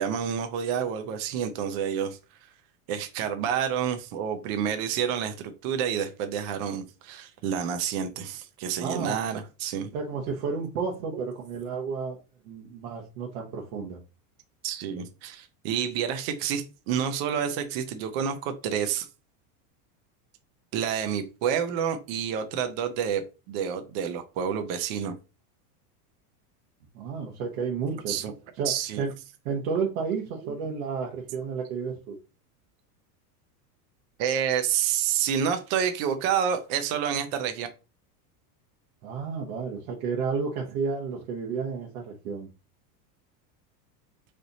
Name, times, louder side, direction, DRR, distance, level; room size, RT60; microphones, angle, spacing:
voice 1, 0.0-2.2 2.9-9.9 11.1-11.2 14.6-19.1 20.7-25.1 28.1-28.3 28.6-29.0 30.1-30.2 34.2-37.7, right 8 dB, 40° right, 7 dB, 0.6 m, -29 dB
voice 2, 8.8-9.2 9.9-12.2 12.4-14.0 26.9-28.2 28.6-28.7 29.0-29.1 29.4-32.2 39.0-42.5, right 5 dB, 65° right, -1 dB, 1.2 m, -31 dB
4.0 x 3.3 x 4.0 m, 0.30 s
supercardioid pair, 170°, 46 cm